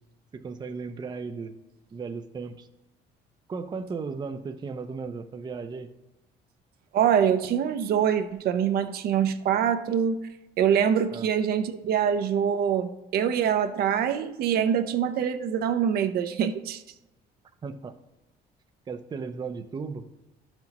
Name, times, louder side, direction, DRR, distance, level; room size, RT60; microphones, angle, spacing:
voice 1, 0.3-1.6 1.9-2.7 3.5-5.9 11.1-11.3 17.6-17.9 18.9-20.1, right 4 dB, 25° right, 7 dB, 0.5 m, -35 dB
voice 2, 6.9-10.2 10.6-16.8, right 8 dB, 65° right, 8 dB, 0.6 m, -24 dB
11.5 x 5.9 x 2.9 m, 0.96 s
cardioid pair, 110°, 17 cm